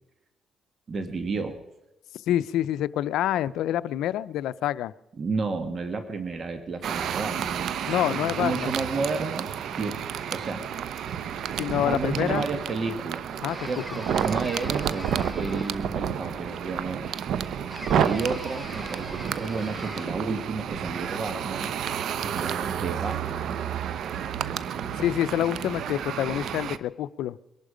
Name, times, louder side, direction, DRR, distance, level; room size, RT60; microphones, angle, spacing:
voice 1, 0.9-1.6 5.2-7.7 8.1-9.5 9.8-10.0 10.3-10.6 11.8-13.3 13.7-15.1 15.3-17.2 18.0-21.7 22.2-23.6, right 4 dB, 45° right, 8 dB, 1.6 m, -31 dB
voice 2, 2.3-4.9 7.9-8.7 11.6-12.5 13.4-13.7 25.0-27.4, left 12 dB, 85° left, 16 dB, 0.5 m, -27 dB
sound 1, 6.8-26.8, right 8 dB, 70° right, 0.7 m, -30 dB
sound 2, 13.5-16.0 17.7-20.3, left 1 dB, 5° left, 1.3 m, -41 dB
22.5 x 11.5 x 5.1 m, 0.94 s
cardioid pair, 90°, 0 cm